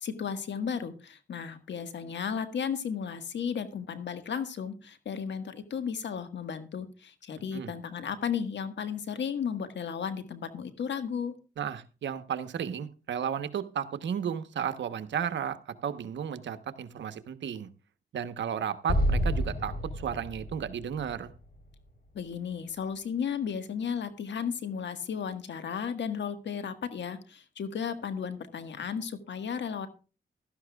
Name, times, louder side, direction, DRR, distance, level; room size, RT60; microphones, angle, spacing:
voice 1, 0.0-11.4 22.1-29.9, left 7 dB, 75° left, 10 dB, 1.6 m, -34 dB
voice 2, 11.6-17.7 18.1-21.3, right 8 dB, 80° right, 10 dB, 1.1 m, -34 dB
Explosion, 18.9-22.2, equal, 55° left, 4.0 m, -30 dB
16.0 x 12.5 x 2.3 m, 0.34 s
cardioid pair, 65°, 19 cm